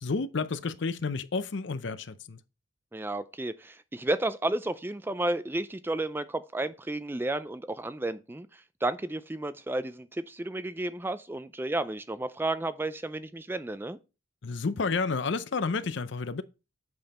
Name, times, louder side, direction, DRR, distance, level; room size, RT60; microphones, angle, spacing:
voice 1, 0.0-2.4 14.4-16.4, left 4 dB, 60° left, 0.5 m, -30 dB
voice 2, 2.9-14.0, right 2 dB, 10° right, 0.3 m, -32 dB
7.9 x 5.3 x 4.2 m
head